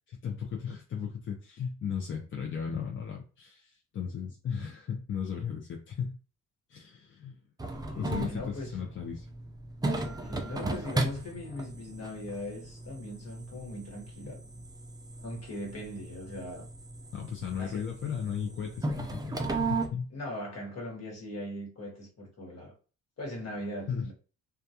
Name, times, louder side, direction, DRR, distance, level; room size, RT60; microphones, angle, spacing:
voice 1, 0.1-6.2 6.7-7.4 8.0-9.2 17.1-20.1 23.9-24.1, left 7 dB, 40° left, 0.5 m, -36 dB
sound 1, 7.6-19.9, right 2 dB, 15° right, 0.4 m, -36 dB
voice 2, 7.7-8.7 10.0-14.4 15.2-16.6 17.6-17.9 20.1-22.7 23.2-24.1, left 1 dB, 55° left, 1.3 m, -40 dB
2.3 x 2.2 x 2.7 m
cardioid pair, 90°, 30 cm